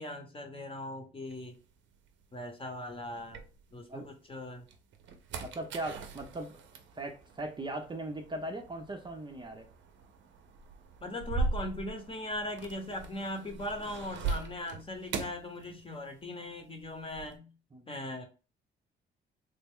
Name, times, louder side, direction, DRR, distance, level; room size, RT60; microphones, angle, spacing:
voice 1, 0.0-1.6 2.3-3.4 3.7-4.7 11.0-17.5 17.9-18.3, left 1 dB, 25° left, 0.9 m, -39 dB
sound 1, 1.3-4.1 4.5-16.3 16.5-17.4, right 4 dB, 70° right, 0.6 m, -40 dB
voice 2, 5.4-6.6 6.9-9.7 17.7-18.0, right 1 dB, 25° right, 0.5 m, -39 dB
3.3 x 2.1 x 3.5 m
cardioid pair, 90°, 20 cm